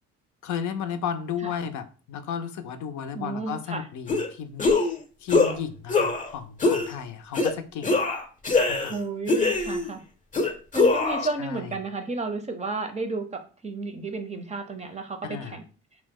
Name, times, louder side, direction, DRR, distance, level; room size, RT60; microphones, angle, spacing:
voice 1, 0.4-4.9 5.2-7.9 8.7-8.9 11.4-11.7 15.2-15.6, left 7 dB, 75° left, 0.5 m, -34 dB
voice 2, 3.1-3.8 8.9-10.0 10.7-15.6, right 3 dB, 25° right, 0.5 m, -32 dB
sound 1, 4.1-4.3 4.6-5.0 5.3-5.5 5.9-6.3 6.6-6.9 7.3-7.5 7.8-9.0 9.3-9.9 10.3-11.3, left 3 dB, 25° left, 0.6 m, -23 dB
2.9 x 2.1 x 3.5 m
cardioid pair, 90°, 30 cm